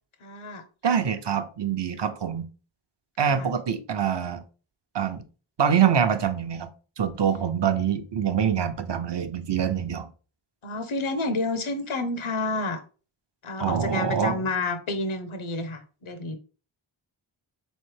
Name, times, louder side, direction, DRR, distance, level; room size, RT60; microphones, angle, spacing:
voice 1, 0.2-0.6 3.2-3.5 10.6-12.8 13.4-16.4, left 2 dB, 75° left, 0.8 m, -30 dB
voice 2, 0.8-2.5 3.2-4.4 4.9-5.2 5.6-6.7 7.0-10.1 13.6-14.5, right 8 dB, 60° right, 0.6 m, -25 dB
3.8 x 3.2 x 3.2 m
wide cardioid pair, 60°, 49 cm